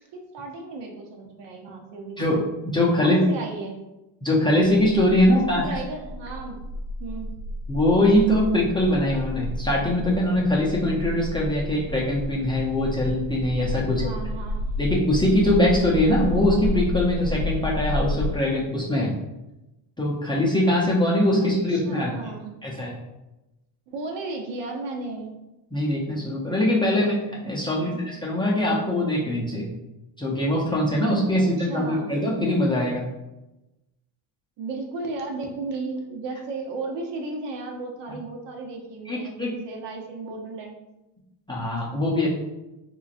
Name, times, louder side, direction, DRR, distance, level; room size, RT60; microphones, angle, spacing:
voice 1, 0.1-2.3 3.0-3.8 5.3-6.6 7.0-7.3 13.9-14.7 21.4-22.5 23.9-25.4 26.9-27.1 27.7-28.2 31.4-32.2 34.6-40.8, right 3 dB, 65° right, 1 dB, 0.9 m, -34 dB
voice 2, 2.7-3.2 4.2-5.6 7.7-14.1 14.8-19.1 20.0-22.1 22.6-22.9 25.7-27.1 27.4-29.7 30.2-33.1 39.1-39.6 41.5-42.3, left 1 dB, 10° left, -5 dB, 0.5 m, -22 dB
sound 1, 4.7-18.3, left 2 dB, 65° left, 0.6 m, -31 dB
3.7 x 3.0 x 2.5 m, 0.96 s
cardioid pair, 120°, 46 cm